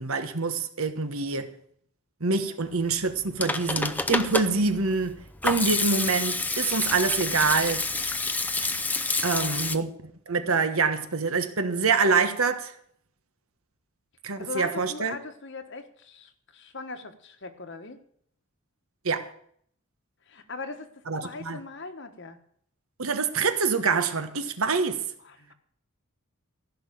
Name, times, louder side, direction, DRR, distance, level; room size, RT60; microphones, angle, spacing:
voice 1, 0.0-1.5 2.2-7.9 9.2-12.7 14.2-15.1 19.0-19.3 21.1-21.6 23.0-25.0, right 4 dB, 75° right, 1.3 m, -26 dB
Hands / Sink (filling or washing), 3.1-9.8, left 3 dB, 5° left, 0.5 m, -28 dB
voice 2, 9.2-9.8 14.4-18.0 20.3-22.4 25.2-25.5, left 3 dB, 55° left, 1.3 m, -40 dB
15.0 x 6.0 x 9.0 m
head